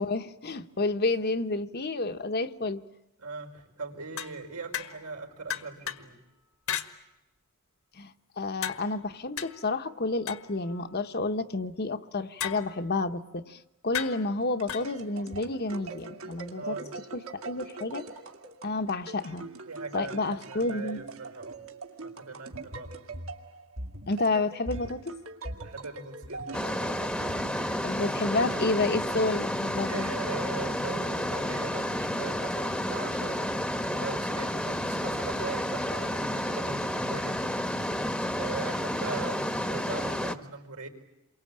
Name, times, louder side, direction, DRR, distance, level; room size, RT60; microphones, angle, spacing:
voice 1, 0.0-2.8 8.0-16.8 17.3-18.1 18.6-19.5 19.9-21.0 24.1-25.1 27.8-30.1, left 3 dB, 45° left, 8 dB, 1.1 m, -30 dB
voice 2, 3.2-6.2 16.6-16.9 19.6-21.6 22.0-23.1 25.6-26.8 29.8-37.6 38.4-40.9, right 4 dB, 85° right, 3 dB, 5.1 m, -40 dB
sound 1, 4.2-5.2 5.5-6.1 6.7-6.9 8.6-11.1 12.4-13.0 13.9-14.9, left 10 dB, 70° left, 1.7 m, -36 dB
sound 2, 14.3-28.2, right 2 dB, 65° right, 2.4 m, -42 dB
sound 3, 26.5-40.3, equal, 5° left, 1.1 m, -31 dB
28.5 x 24.0 x 8.8 m, 0.95 s
head